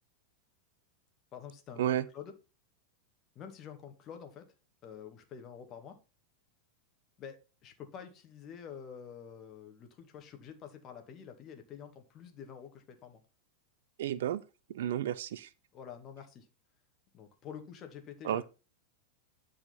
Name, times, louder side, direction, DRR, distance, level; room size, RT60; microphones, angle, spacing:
voice 1, 1.3-2.3 3.4-4.5 4.8-6.0 7.2-13.2 15.7-16.5 17.1-18.5, left 7 dB, 30° left, 2.2 m, -48 dB
voice 2, 14.0-14.4 14.7-15.5 18.2-18.4, right 11 dB, 55° right, 0.5 m, -31 dB
11.0 x 5.0 x 5.5 m
figure-of-eight pair, 90°, 0 cm